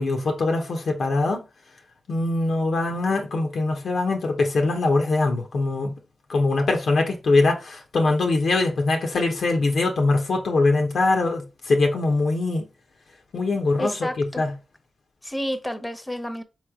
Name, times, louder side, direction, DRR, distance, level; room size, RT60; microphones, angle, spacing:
voice 1, 0.0-1.4 2.1-5.9 6.3-12.7 13.3-13.9 14.2-14.5, left 3 dB, 75° left, 1.0 m, -22 dB
voice 2, 13.8-14.4 15.2-16.4, equal, 15° left, 0.9 m, -30 dB
4.1 x 3.3 x 3.7 m
cardioid pair, 50°, 0 cm